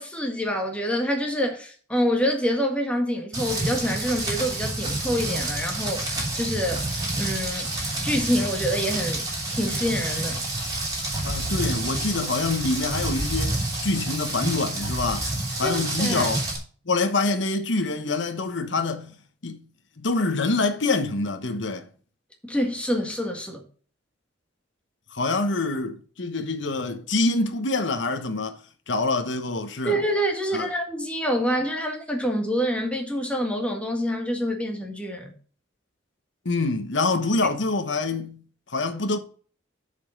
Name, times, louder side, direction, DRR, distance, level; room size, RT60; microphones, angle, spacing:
voice 1, 0.0-7.7 8.0-9.3 9.5-10.4 15.6-16.3 22.5-23.6 29.9-35.3 37.4-37.5, equal, 5° left, 1.8 m, -26 dB
Rain, 3.3-16.6, right 2 dB, 20° right, 3.0 m, -28 dB
voice 2, 11.2-15.3 15.6-16.4 16.9-19.2 19.4-19.6 20.0-21.9 25.1-28.6 28.9-30.0 30.5-30.7 36.4-39.2, left 3 dB, 70° left, 1.1 m, -26 dB
7.0 x 5.4 x 6.4 m
head